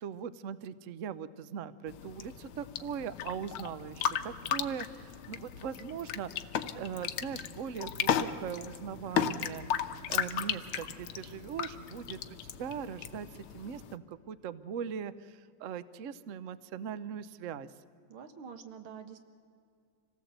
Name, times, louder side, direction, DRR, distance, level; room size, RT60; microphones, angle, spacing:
voice 1, 0.0-9.6 10.1-13.3 13.5-17.7, right 7 dB, 65° right, 15 dB, 0.8 m, -40 dB
sound 1, 1.9-14.0, left 9 dB, 85° left, 1.7 m, -36 dB
voice 2, 18.1-19.2, right 6 dB, 80° right, 8 dB, 2.3 m, -46 dB
26.0 x 18.0 x 8.1 m, 2.3 s
omnidirectional pair, 2.2 m